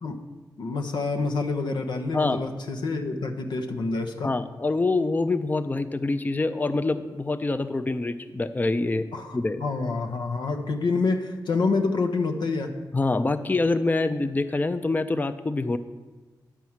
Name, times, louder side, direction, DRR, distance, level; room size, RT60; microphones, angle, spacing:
voice 1, 0.6-4.3 9.1-12.7, left 3 dB, 90° left, 5 dB, 0.8 m, -27 dB
voice 2, 2.1-2.4 4.2-9.1 9.3-9.6 12.9-15.8, left 3 dB, 20° left, 10 dB, 0.4 m, -25 dB
9.9 x 4.6 x 7.2 m, 1.3 s
cardioid pair, 60°, 8 cm